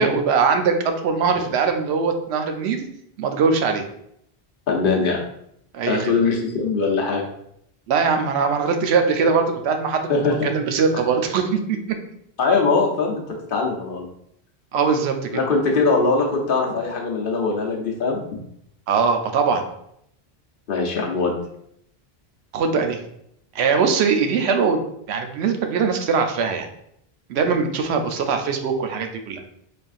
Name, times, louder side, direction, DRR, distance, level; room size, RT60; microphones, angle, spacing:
voice 1, 0.0-2.9 3.2-3.8 5.7-6.1 7.9-10.1 10.4-12.0 14.7-15.4 18.9-19.6 22.5-23.0 23.5-24.8 25.1-26.7 27.3-29.4, right 5 dB, 90° right, 6 dB, 0.8 m, -21 dB
voice 2, 4.7-5.2 5.9-7.2 10.1-10.5 12.4-13.2 13.5-14.1 15.3-18.2 20.7-21.4, left 4 dB, 60° left, 0 dB, 0.9 m, -21 dB
4.3 x 3.4 x 2.4 m, 0.73 s
omnidirectional pair, 1.1 m